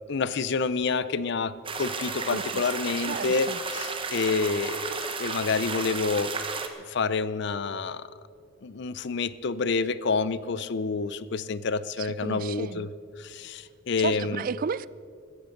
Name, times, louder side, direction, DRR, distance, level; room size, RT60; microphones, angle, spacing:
voice 1, 0.1-6.3 6.9-8.1 8.6-12.9 13.2-14.4, left 4 dB, 60° left, 0.5 m, -28 dB
sound 1, 1.6-6.7, right 4 dB, 25° right, 1.2 m, -33 dB
voice 2, 2.3-2.6 3.0-3.6 12.0-12.9 14.0-14.9, right 6 dB, 45° right, 0.3 m, -33 dB
16.0 x 14.0 x 5.2 m
head